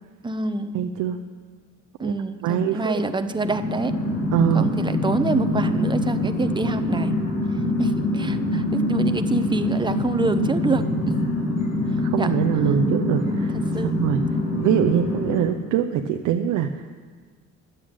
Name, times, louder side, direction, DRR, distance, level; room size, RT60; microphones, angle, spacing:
voice 1, 0.2-0.8 2.0-4.0 4.5-7.1 7.8-11.2 12.2-12.3 13.7-13.9, right 3 dB, 15° right, 10 dB, 0.7 m, -26 dB
voice 2, 0.7-1.2 2.0-2.1 2.4-2.9 4.3-4.7 12.0-13.5 13.8-14.3 14.6-16.8, right 9 dB, 90° right, 5 dB, 0.6 m, -23 dB
sound 1, 3.2-15.4, left 1 dB, 80° left, 4.5 m, -24 dB
10.5 x 7.5 x 8.9 m, 1.5 s
cardioid pair, 90°, 30 cm